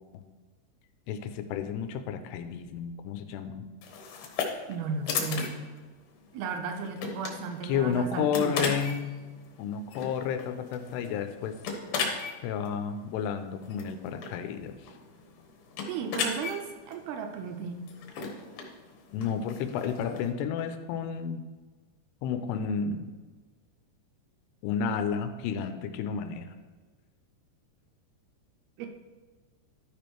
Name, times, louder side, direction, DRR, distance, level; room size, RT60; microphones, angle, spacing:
voice 1, 1.1-3.7 7.6-9.1 9.6-11.6 12.4-14.8 19.1-21.4 22.2-23.1 24.6-26.5, left 7 dB, 85° left, 8 dB, 2.7 m, -31 dB
sound 1, 3.8-20.3, left 5 dB, 70° left, 2.7 m, -37 dB
voice 2, 4.7-5.6 6.3-8.7 15.9-17.9 28.8-28.9, right 5 dB, 80° right, 5 dB, 2.3 m, -35 dB
12.5 x 5.2 x 4.5 m, 1.3 s
omnidirectional pair, 4.9 m